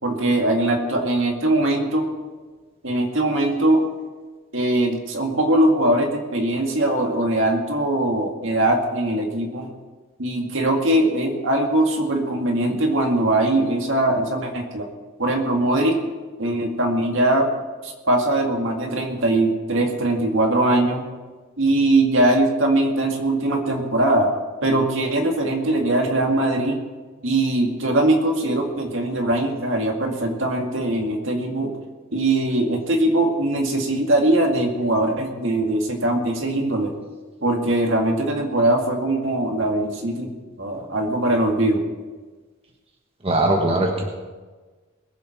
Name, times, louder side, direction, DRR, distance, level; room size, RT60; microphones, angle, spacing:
voice 1, 0.0-2.1 2.8-3.9 4.5-9.7 10.2-14.9 15.2-16.0 16.4-17.5 17.8-21.0 21.6-24.3 24.6-26.8 27.2-31.7 32.1-36.9 37.4-40.3 40.6-41.8, right 1 dB, 65° right, 2 dB, 2.1 m, -21 dB
voice 2, 43.2-44.0, right 1 dB, 30° right, 1 dB, 1.3 m, -20 dB
21.0 x 7.7 x 5.8 m, 1.4 s
head